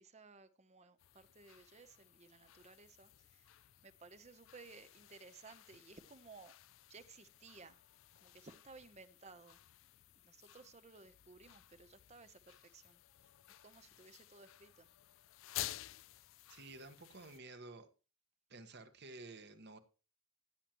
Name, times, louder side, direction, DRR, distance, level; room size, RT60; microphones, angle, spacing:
voice 1, 0.0-6.6 6.9-7.8 8.2-9.6 10.2-13.3 13.6-14.9, right 4 dB, 30° right, 0.8 m, -58 dB
sound 1, 1.0-17.4, left 14 dB, 65° left, 0.4 m, -53 dB
voice 2, 16.5-17.9 18.5-19.8, right 2 dB, 55° right, 1.4 m, -52 dB
15.5 x 8.9 x 3.0 m
head